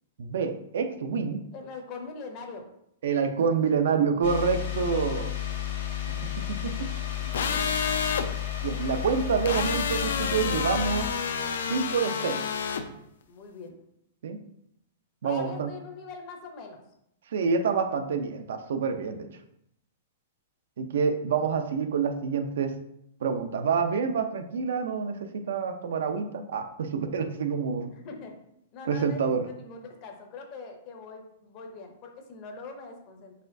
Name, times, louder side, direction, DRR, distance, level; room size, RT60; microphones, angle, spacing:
voice 1, 0.2-1.4 3.0-5.3 6.6-6.9 8.6-11.1 11.7-12.4 14.2-14.4 15.2-15.7 17.3-19.3 20.8-22.7 23.2-27.9 28.9-29.4, right 5 dB, 70° right, 7 dB, 0.5 m, -27 dB
voice 2, 1.5-2.6 3.4-3.5 7.2-7.7 13.3-13.8 15.2-16.8 27.9-28.3 28.7-33.3, left 4 dB, 30° left, 4 dB, 0.6 m, -42 dB
sound 1, 4.2-11.1, left 10 dB, 60° left, 1.0 m, -33 dB
sound 2, 7.3-8.2 9.4-12.8, left 6 dB, 80° left, 0.4 m, -29 dB
4.7 x 4.1 x 2.6 m, 0.77 s
hypercardioid pair, 170°, 0 cm